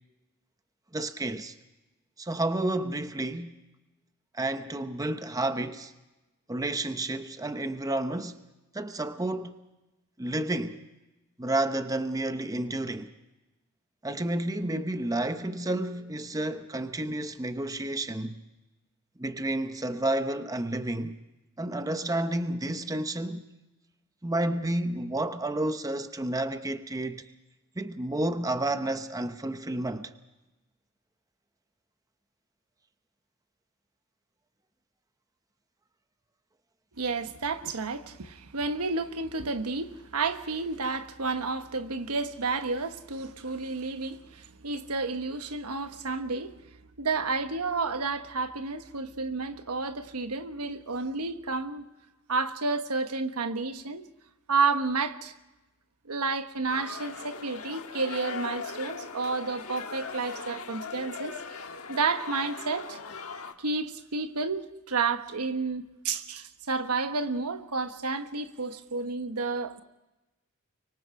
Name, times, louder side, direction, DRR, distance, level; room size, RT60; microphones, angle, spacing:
voice 1, 0.9-1.5 2.2-3.6 4.3-5.9 6.5-8.4 8.7-9.5 10.2-10.8 11.4-13.1 14.0-18.4 19.2-21.2 21.6-23.4 24.2-27.2 27.8-30.1, right 1 dB, 15° right, 0.8 m, -30 dB
voice 2, 37.0-46.5 47.0-51.8 52.3-54.1 54.5-55.3 56.0-61.6 61.9-63.0 63.6-69.8, right 4 dB, 90° right, 1.2 m, -31 dB
sound 1, 56.7-63.5, left 5 dB, 70° left, 1.5 m, -39 dB
24.5 x 24.0 x 5.0 m
head